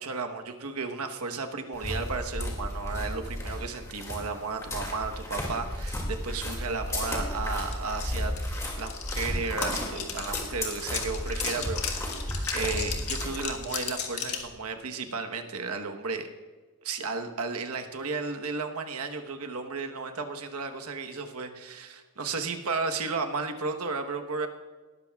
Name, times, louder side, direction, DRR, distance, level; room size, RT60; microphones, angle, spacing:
voice 1, 0.0-8.3 8.8-12.0 12.5-16.3 16.8-24.5, right 4 dB, 85° right, 5 dB, 1.1 m, -33 dB
sound 1, 1.7-13.6, left 1 dB, 15° left, 2.3 m, -34 dB
sound 2, 7.7-7.8 8.0-14.5, left 7 dB, 85° left, 1.5 m, -35 dB
19.0 x 13.0 x 2.4 m, 1.4 s
head